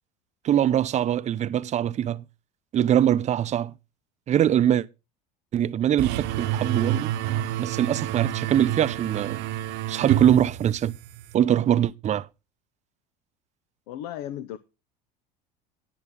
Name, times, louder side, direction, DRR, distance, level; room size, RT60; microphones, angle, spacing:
voice 1, 0.4-2.2 2.7-3.7 4.3-4.9 5.5-7.1 7.6-9.4 9.9-10.9 11.3-12.3, right 10 dB, 35° right, 0.6 m, -22 dB
sound 1, 6.0-11.3, right 12 dB, 60° right, 1.0 m, -29 dB
voice 2, 13.9-14.6, left 11 dB, 75° left, 0.9 m, -35 dB
11.0 x 10.5 x 3.7 m
supercardioid pair, 100°, 20 cm